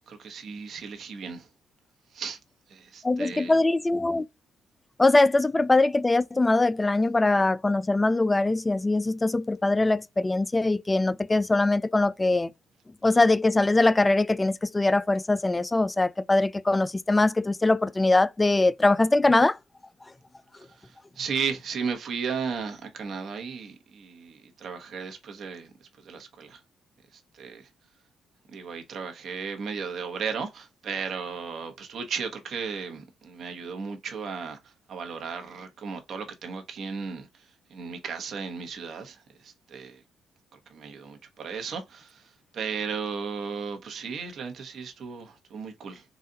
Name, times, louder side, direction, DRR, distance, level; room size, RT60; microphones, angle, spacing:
voice 1, 0.1-1.5 2.1-2.4 2.7-3.6 20.6-25.7 26.0-26.6 27.1-27.7 28.5-34.6 34.9-37.4 37.7-40.0 40.5-46.0, right 6 dB, 60° right, 1.1 m, -35 dB
voice 2, 3.0-4.3 5.0-12.5 13.0-19.6, left 2 dB, 20° left, 0.3 m, -22 dB
4.0 x 2.4 x 3.9 m
cardioid pair, 90°, 0 cm